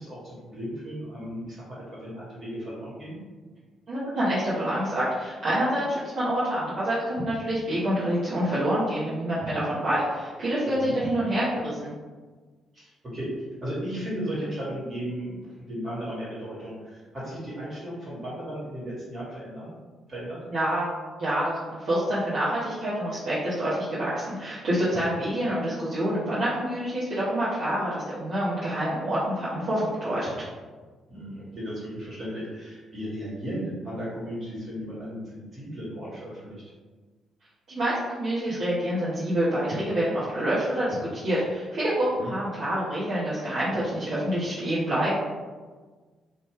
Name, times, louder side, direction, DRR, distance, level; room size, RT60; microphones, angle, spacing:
voice 1, 0.0-3.2 10.7-10.9 12.7-13.3 13.6-19.7 20.1-20.4 31.1-36.6 42.2-42.3, equal, 35° right, -7 dB, 1.4 m, -35 dB
voice 2, 3.9-11.9 20.5-20.8 21.2-30.5 37.7-45.1, right 1 dB, 55° right, -11 dB, 0.7 m, -27 dB
2.6 x 2.1 x 3.4 m, 1.4 s
figure-of-eight pair, 40°, 0 cm